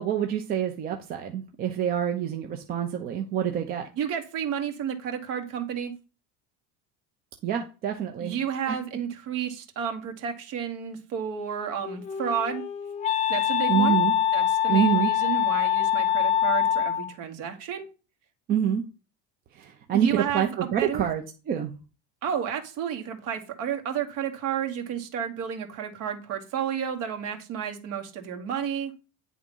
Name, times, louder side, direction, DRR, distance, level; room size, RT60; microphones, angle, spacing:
voice 1, 0.0-3.9 7.4-8.4 8.7-9.0 13.7-14.1 14.7-15.1 18.5-18.8 19.5-21.7, right 9 dB, 25° right, 4 dB, 0.6 m, -27 dB
voice 2, 3.9-5.9 8.2-12.6 13.3-14.0 14.3-17.9 19.9-21.0 22.2-28.9, right 8 dB, 45° right, 4 dB, 1.7 m, -31 dB
Wind instrument woodwind instrument, 11.6-17.1, left 10 dB, 20° left, 0.6 m, -24 dB
9.7 x 3.6 x 5.3 m, 0.32 s
cardioid pair, 170°, 34 cm